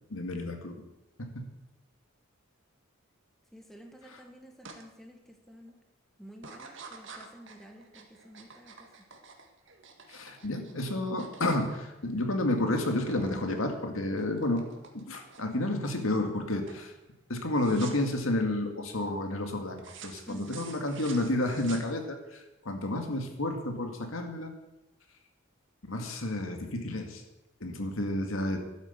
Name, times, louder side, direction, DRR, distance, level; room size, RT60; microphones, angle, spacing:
voice 1, 0.1-0.8 1.2-1.5 4.1-4.2 10.1-14.6 14.9-16.9 17.3-24.5 25.9-27.2 27.6-28.6, left 1 dB, 80° left, 4 dB, 2.1 m, -31 dB
voice 2, 3.5-5.8 6.2-8.9 20.3-20.6, equal, ahead, 3 dB, 1.5 m, -51 dB
sound 1, 4.6-4.8 5.3-5.7 6.4-12.4 12.7-13.4 13.7-15.6 16.1-16.4 16.7-16.9 17.6-18.2 19.8-22.3, right 5 dB, 60° right, 1.9 m, -49 dB
12.5 x 9.7 x 8.1 m, 0.99 s
head